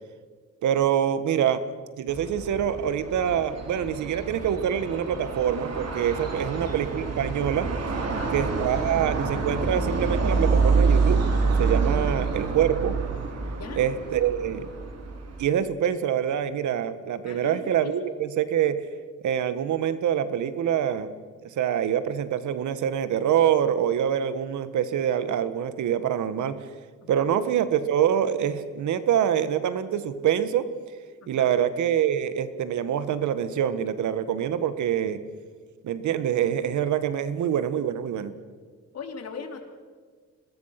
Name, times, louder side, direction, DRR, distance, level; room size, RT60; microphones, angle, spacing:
voice 1, 0.6-1.6 2.0-8.0 8.3-11.2 11.6-12.9 13.8-14.7 15.4-18.8 19.2-21.1 21.6-26.6 27.1-30.7 31.3-35.2 35.8-38.3, right 9 dB, 75° right, 13 dB, 1.6 m, -25 dB
sound 1, 2.1-15.4, right 4 dB, 55° right, 3.7 m, -27 dB
voice 2, 13.5-13.8 17.2-18.0 27.0-27.3 31.2-31.5 38.9-39.6, left 5 dB, 55° left, 5 dB, 3.6 m, -40 dB
27.0 x 20.5 x 5.9 m, 1.5 s
cardioid pair, 90°, 30 cm